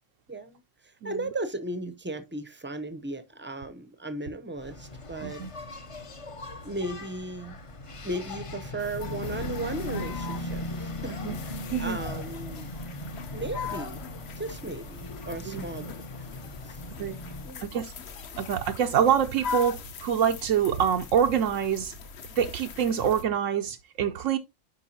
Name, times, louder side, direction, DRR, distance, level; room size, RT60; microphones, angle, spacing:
voice 1, 0.3-5.5 6.6-7.6 8.0-12.7 13.3-14.0 14.4-15.9 16.6-17.6, right 2 dB, 10° right, 0.5 m, -36 dB
Engine, 4.6-17.6, left 1 dB, 35° left, 0.6 m, -38 dB
sound 1, 8.8-23.2, left 5 dB, 60° left, 1.0 m, -41 dB
voice 2, 18.4-21.9 22.4-24.4, right 8 dB, 85° right, 1.0 m, -25 dB
10.5 x 4.6 x 2.8 m
omnidirectional pair, 1.3 m